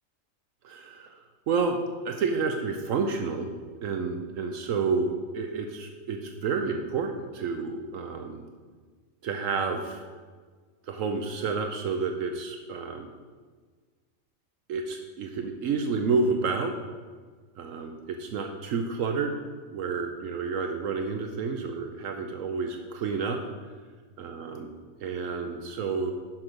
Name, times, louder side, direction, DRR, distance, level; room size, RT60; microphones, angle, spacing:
voice 1, 0.6-1.2 1.5-1.8 2.0-3.5 3.8-8.4 9.2-10.1 10.9-13.1 14.7-16.7 17.6-19.4 19.7-23.4 24.2-24.7 25.0-26.1, right 4 dB, 75° right, 5 dB, 1.1 m, -30 dB
10.5 x 6.1 x 5.0 m, 1.5 s
omnidirectional pair, 1.4 m